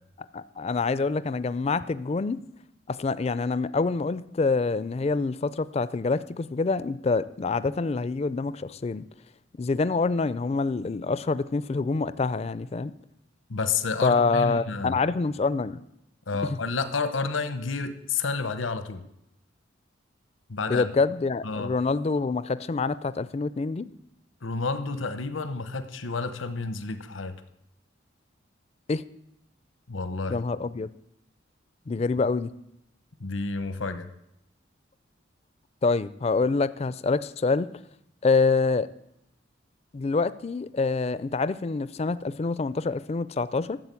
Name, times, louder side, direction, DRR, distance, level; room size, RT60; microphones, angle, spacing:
voice 1, 0.3-2.4 2.9-9.0 9.6-12.9 14.0-15.8 16.4-16.6 20.7-23.9 28.9-29.0 30.3-30.9 31.9-32.5 35.8-37.7 38.2-38.9 39.9-43.8, left 4 dB, 35° left, 16 dB, 0.4 m, -26 dB
voice 2, 13.5-15.0 16.3-19.0 20.5-20.9 21.4-21.7 24.4-27.3 29.9-30.4 33.2-34.1, left 4 dB, 85° left, 11 dB, 1.0 m, -30 dB
13.0 x 7.7 x 8.3 m, 0.82 s
head